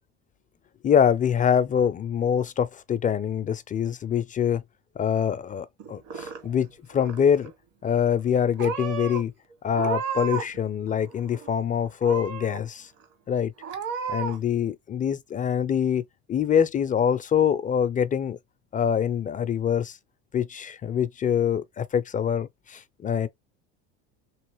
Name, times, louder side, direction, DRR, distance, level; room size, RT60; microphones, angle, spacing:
voice 1, 0.8-4.6 5.0-7.5 7.8-9.3 9.6-12.9 13.3-13.5 14.1-16.0 16.3-18.4 18.7-20.0 20.3-23.3, left 8 dB, 25° left, 0.3 m, -24 dB
Purr / Meow, 5.8-6.7 6.9-7.5 8.2-8.3 8.6-9.2 9.7-10.6 10.9-11.6 12.0-12.6 13.0-13.1 13.6-14.4, right 6 dB, 60° right, 1.3 m, -33 dB
3.0 x 2.9 x 3.1 m
supercardioid pair, 95°, 34 cm